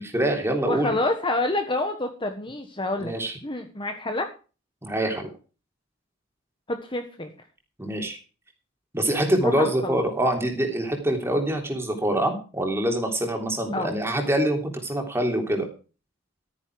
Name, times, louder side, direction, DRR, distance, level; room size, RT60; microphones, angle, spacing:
voice 1, 0.0-0.9 3.0-3.4 4.8-5.3 7.8-8.2 8.9-15.7, right 1 dB, 10° right, 3 dB, 3.3 m, -25 dB
voice 2, 0.7-3.1 3.4-4.3 6.7-7.3 9.4-10.1 13.7-13.9, left 2 dB, 25° left, 6 dB, 1.4 m, -28 dB
14.0 x 9.9 x 4.9 m, 0.34 s
head